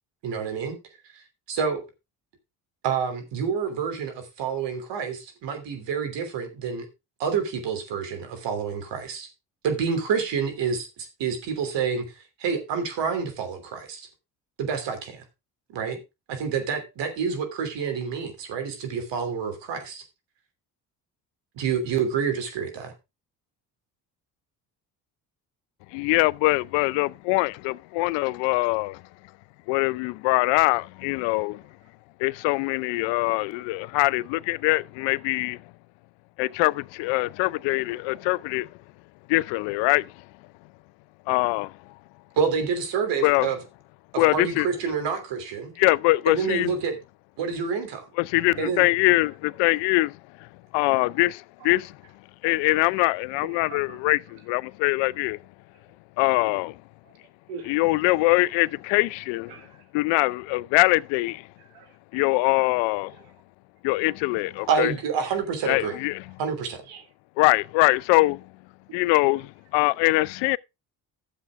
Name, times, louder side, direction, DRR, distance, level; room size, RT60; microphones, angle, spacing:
voice 1, 0.2-0.8 1.1-1.8 2.8-6.9 7.2-9.3 9.6-14.1 14.6-15.2 15.7-16.0 16.3-20.0 21.5-22.9 42.4-43.6 44.1-45.7 46.3-47.0 47.4-48.1 48.6-48.8 64.7-65.9 66.4-66.8, right 6 dB, 70° right, 3.0 m, -28 dB
voice 2, 25.9-29.0 29.7-31.6 32.2-35.6 36.4-38.7 39.3-40.1 41.3-41.7 43.2-43.5 44.2-44.7 45.8-46.7 48.2-50.2 50.7-51.9 52.4-54.2 54.5-55.4 56.2-56.8 57.7-59.5 59.9-61.5 62.1-63.1 63.8-64.9 65.6-66.2 67.4-68.4 68.9-70.6, left 22 dB, 80° left, 0.5 m, -23 dB
voice 3, 53.3-54.1 57.0-57.1 57.5-57.8 59.5-59.9 61.6-62.0 63.1-63.4 66.9-67.1 68.9-69.2, right 6 dB, 90° right, 1.9 m, -44 dB
12.0 x 7.5 x 3.5 m
hypercardioid pair, 55°, 44 cm